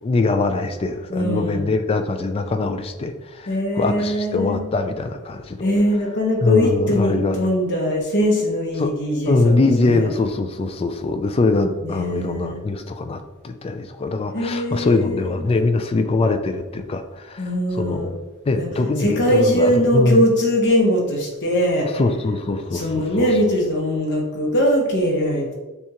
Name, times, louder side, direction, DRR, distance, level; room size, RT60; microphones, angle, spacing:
voice 1, 0.0-5.7 6.4-7.4 8.8-8.9 9.3-18.1 18.5-20.3 21.9-23.3, left 3 dB, 25° left, 8 dB, 0.3 m, -22 dB
voice 2, 1.1-1.7 3.5-4.6 5.6-10.1 11.8-12.6 14.3-15.4 17.4-18.1 18.5-18.7 19.0-21.9 22.7-25.5, equal, 55° left, 0 dB, 1.0 m, -21 dB
7.0 x 2.4 x 2.9 m, 1.2 s
head